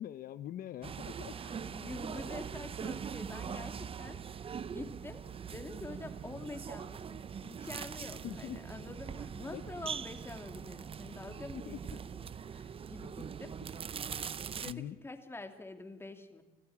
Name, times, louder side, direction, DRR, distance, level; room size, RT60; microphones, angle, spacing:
voice 1, 0.0-1.3 8.2-8.6 9.5-9.6 11.5-11.8 14.7-15.0, left 12 dB, 60° left, 13 dB, 0.8 m, -42 dB
sound 1, 0.8-14.7, right 7 dB, 35° right, 0.7 m, -42 dB
voice 2, 1.3-13.6 14.6-16.4, left 2 dB, 15° left, 7 dB, 2.7 m, -47 dB
25.0 x 14.5 x 8.6 m, 1.2 s
cardioid pair, 110°, 17 cm